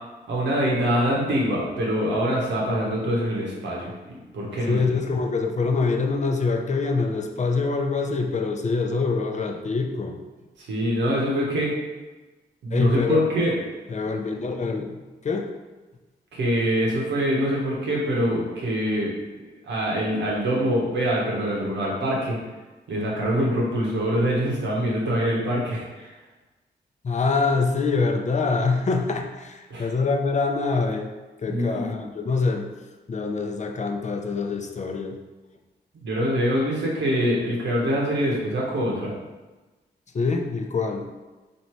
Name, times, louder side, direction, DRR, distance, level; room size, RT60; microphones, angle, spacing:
voice 1, 0.3-4.8 10.6-11.7 12.6-13.6 16.3-19.1 19.6-22.4 22.9-26.1 29.7-29.9 31.5-31.9 36.0-39.1, equal, 90° right, -3 dB, 1.0 m, -24 dB
voice 2, 4.7-10.2 12.7-13.2 13.9-15.5 27.0-31.1 31.4-32.7 33.1-35.2 40.1-41.1, left 4 dB, 40° left, 3 dB, 0.5 m, -25 dB
3.1 x 2.7 x 4.4 m, 1.2 s
cardioid pair, 65°, 18 cm